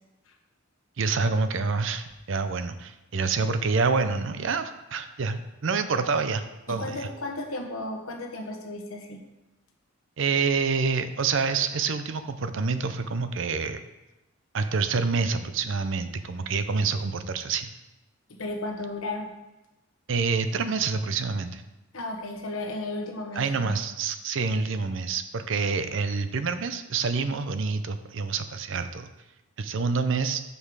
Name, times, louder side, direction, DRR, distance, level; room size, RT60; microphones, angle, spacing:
voice 1, 1.0-7.1 10.2-13.8 14.5-17.7 20.1-21.6 23.4-29.1 29.6-30.4, right 4 dB, 60° right, 10 dB, 0.5 m, -27 dB
voice 2, 6.7-9.2 18.3-19.3 21.9-23.8, left 2 dB, 85° left, 3 dB, 1.2 m, -34 dB
6.6 x 5.5 x 4.7 m, 0.99 s
head